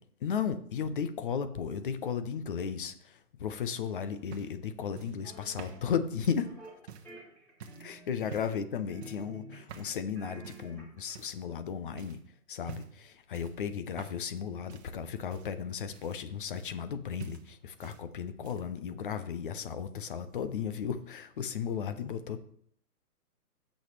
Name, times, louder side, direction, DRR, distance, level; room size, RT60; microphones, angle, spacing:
voice 1, 0.2-6.5 7.8-12.2 12.5-22.4, left 7 dB, 35° left, 11 dB, 0.7 m, -35 dB
sound 1, 3.7-7.2 7.6-7.9 8.3-8.7 9.0-9.3 9.7-10.0 10.4-10.7 11.1-11.6 12.0-12.2 12.6-13.0 13.3-14.4 14.7-16.9 17.2-18.0 18.3-18.8 19.7-19.8, right 6 dB, 45° right, 1.2 m, -48 dB
sound 2, 5.2-5.9 6.4-6.8 7.0-8.6 8.9-9.8 10.1-11.1, right 1 dB, 5° left, 5.0 m, -50 dB
17.0 x 6.4 x 3.3 m, 0.64 s
hypercardioid pair, 150°, 46 cm